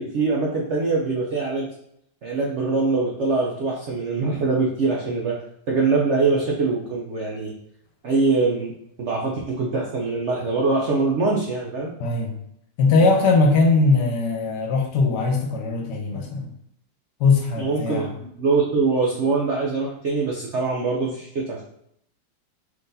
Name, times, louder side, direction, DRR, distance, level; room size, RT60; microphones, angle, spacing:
voice 1, 0.0-1.7 2.2-5.4 5.7-7.5 8.0-8.7 9.0-11.9 17.6-21.6, right 3 dB, 75° right, -2 dB, 0.6 m, -23 dB
voice 2, 12.0-12.3 12.8-16.5 17.2-18.1, left 3 dB, 70° left, 3 dB, 1.2 m, -20 dB
5.0 x 3.8 x 2.6 m, 0.73 s
omnidirectional pair, 2.0 m